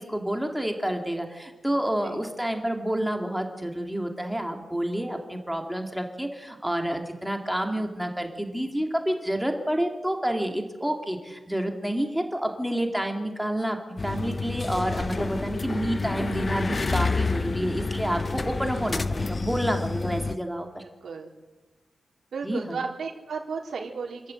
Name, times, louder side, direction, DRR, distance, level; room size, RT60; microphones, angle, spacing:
voice 1, 0.0-13.8 14.0-20.8 22.4-22.8, right 1 dB, ahead, 4 dB, 2.2 m, -29 dB
sound 1, 14.0-20.4, left 3 dB, 25° left, 0.6 m, -29 dB
voice 2, 22.3-24.3, right 5 dB, 60° right, 0 dB, 3.5 m, -34 dB
28.0 x 14.0 x 9.6 m, 1.2 s
wide cardioid pair, 175°, 0 cm